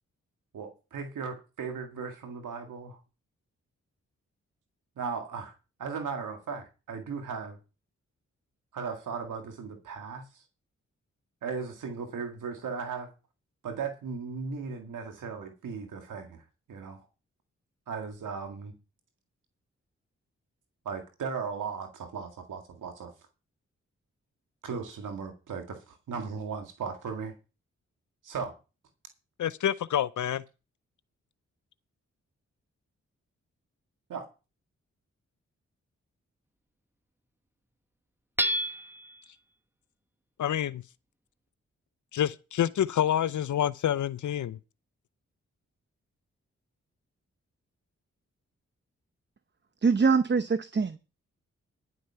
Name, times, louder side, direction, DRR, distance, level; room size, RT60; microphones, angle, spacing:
voice 1, 0.5-3.0 5.0-5.5 5.8-7.6 8.7-10.2 11.4-13.1 13.6-17.1 17.9-18.7 20.9-23.1 24.6-27.3 28.2-28.5 34.1-34.3, right 5 dB, 90° right, 2.0 m, -37 dB
voice 2, 29.4-30.4 40.4-40.8 42.1-44.6, left 10 dB, 75° left, 0.6 m, -27 dB
Hammer / Chink clink, 38.4-39.2, equal, 5° right, 1.1 m, -29 dB
voice 3, 49.8-51.0, right 5 dB, 35° right, 0.8 m, -23 dB
11.0 x 8.1 x 5.7 m
cardioid pair, 50°, 30 cm